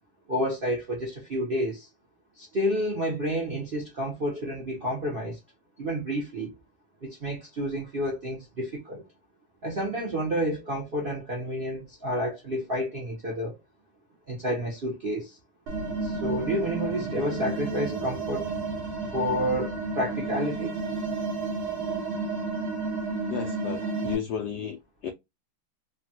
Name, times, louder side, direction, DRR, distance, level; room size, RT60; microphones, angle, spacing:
voice 1, 0.3-1.9 2.4-5.4 5.8-6.5 7.0-9.0 9.6-13.6 14.3-15.4 16.0-18.5 19.1-20.8, equal, 90° right, 0.4 m, -30 dB
sound 1, 15.7-24.2, right 3 dB, 75° right, 1.5 m, -31 dB
voice 2, 23.3-25.1, left 8 dB, 85° left, 0.9 m, -33 dB
3.3 x 2.3 x 2.7 m
omnidirectional pair, 2.3 m